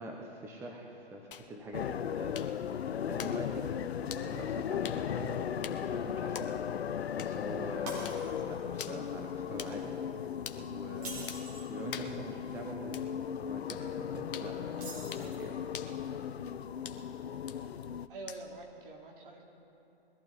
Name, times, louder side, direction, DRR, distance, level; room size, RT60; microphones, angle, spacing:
voice 1, 0.0-5.3 5.6-9.9 10.6-11.3 11.7-13.0 13.4-15.6, right 1 dB, 10° right, 0 dB, 0.8 m, -45 dB
sound 1, 1.3-18.7, left 8 dB, 55° left, 1.0 m, -50 dB
sound 2, 1.7-18.1, left 8 dB, 70° left, 0.6 m, -37 dB
Shatter, 7.9-8.6 9.1-9.3 10.9-11.7 14.7-15.6, right 2 dB, 35° right, 4.3 m, -45 dB
voice 2, 18.1-19.4, right 2 dB, 55° right, 0 dB, 2.8 m, -46 dB
21.5 x 14.5 x 4.1 m, 3.0 s
figure-of-eight pair, 135°, 33 cm